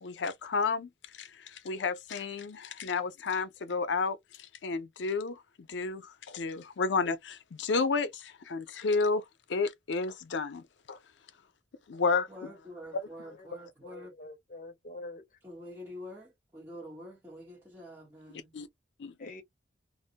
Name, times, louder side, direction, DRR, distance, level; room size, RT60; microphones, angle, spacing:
voice 1, 0.0-0.9 1.2-4.2 4.6-9.2 9.5-11.0 11.9-12.3 18.5-18.7 19.0-19.1, left 4 dB, 90° left, 0.5 m, -31 dB
voice 2, 12.3-14.1 15.4-18.5, left 1 dB, 15° right, 0.9 m, -46 dB
voice 3, 13.8-15.4 19.2-19.4, left 2 dB, 45° left, 0.7 m, -46 dB
2.5 x 2.1 x 2.8 m
head